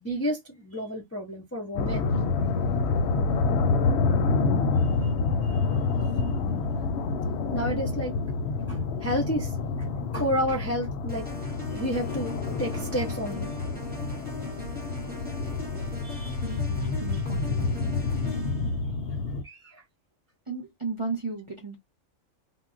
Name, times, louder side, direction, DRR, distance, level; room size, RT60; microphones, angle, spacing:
voice 1, 0.0-2.1 5.0-5.1 5.4-5.7 6.2-6.6 7.5-8.1 8.7-9.5 10.1-11.3 11.7-13.5 16.0-16.6 17.1-17.2 18.3-18.4 19.4-19.8, equal, 20° left, 0.4 m, -31 dB
sound 1, 1.8-19.4, left 4 dB, 65° left, 0.7 m, -28 dB
sound 2, 11.1-18.7, left 2 dB, 10° right, 0.9 m, -40 dB
voice 2, 16.4-17.9 20.5-21.8, right 4 dB, 30° right, 0.6 m, -35 dB
2.3 x 2.0 x 3.6 m
omnidirectional pair, 1.4 m